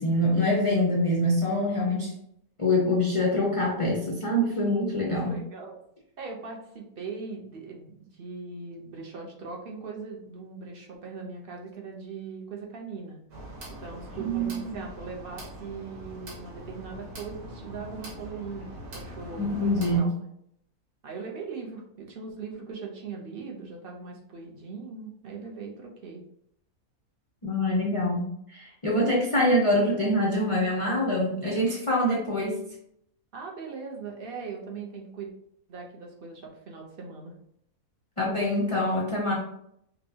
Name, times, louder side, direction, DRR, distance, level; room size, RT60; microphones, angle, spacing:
voice 1, 0.0-2.1 2.6-5.3 14.2-14.6 19.4-20.1 27.4-32.6 38.2-39.3, left 1 dB, 60° left, -3 dB, 0.3 m, -25 dB
voice 2, 5.2-5.8 6.2-13.2 13.8-20.2 21.0-26.2 33.3-35.3 35.7-37.4, right 4 dB, 50° right, 0 dB, 0.7 m, -40 dB
sound 1, 13.3-20.0, right 1 dB, 85° right, 1.7 m, -42 dB
5.3 x 2.2 x 2.7 m, 0.72 s
omnidirectional pair, 1.6 m